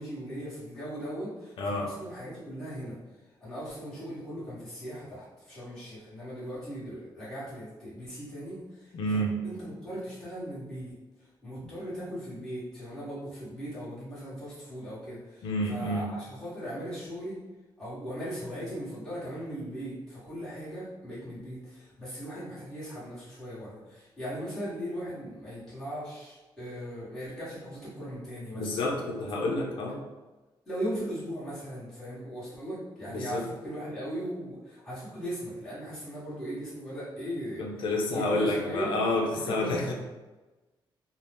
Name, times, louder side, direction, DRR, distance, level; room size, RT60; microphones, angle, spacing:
voice 1, 0.0-3.0 3.4-11.0 11.4-17.4 17.8-29.0 30.7-37.8 38.1-38.9 39.3-39.7, equal, 5° left, -12 dB, 1.2 m, -38 dB
voice 2, 1.6-1.9 8.9-9.4 15.4-16.1 28.5-30.0 33.1-33.5 37.6-39.9, left 1 dB, 65° left, 0 dB, 0.5 m, -29 dB
2.7 x 2.1 x 3.3 m, 1.2 s
cardioid pair, 130°, 9 cm